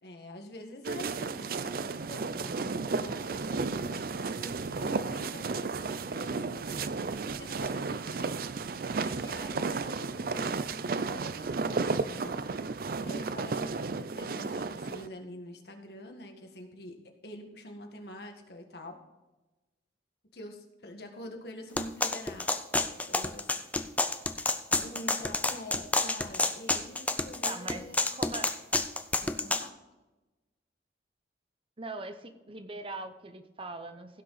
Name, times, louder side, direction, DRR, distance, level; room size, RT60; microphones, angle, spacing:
voice 1, 0.0-8.4 8.7-12.4 13.0-17.0 17.2-19.0 20.3-22.6 23.0-23.6 24.8-28.0 29.2-29.7, left 1 dB, 60° left, 3 dB, 1.7 m, -46 dB
sound 1, 0.8-15.1, right 4 dB, 50° right, 0.5 m, -33 dB
sound 2, 21.8-29.7, left 2 dB, 10° left, 0.5 m, -29 dB
voice 2, 27.4-27.9 28.1-28.5 31.8-34.2, right 2 dB, 30° right, 8 dB, 0.9 m, -41 dB
16.0 x 6.4 x 4.1 m, 1.1 s
head